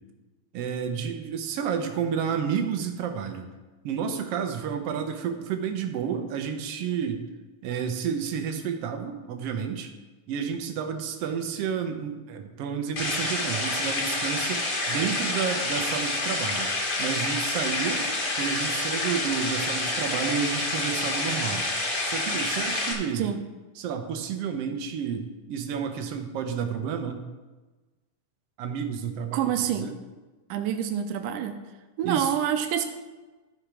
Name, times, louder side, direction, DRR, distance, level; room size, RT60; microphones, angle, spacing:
voice 1, 0.5-3.5 3.8-7.2 7.6-9.9 10.3-16.7 17.0-18.1 18.4-21.7 22.0-23.3 23.8-27.2 28.6-29.9 32.0-32.4, right 7 dB, 70° right, 5 dB, 1.4 m, -30 dB
sound 1, 13.0-22.9, left 2 dB, 40° left, 1.7 m, -28 dB
voice 2, 29.3-29.9 30.5-31.6 32.0-32.8, right 9 dB, 90° right, 6 dB, 2.3 m, -27 dB
13.0 x 5.0 x 6.0 m, 1.2 s
omnidirectional pair, 3.8 m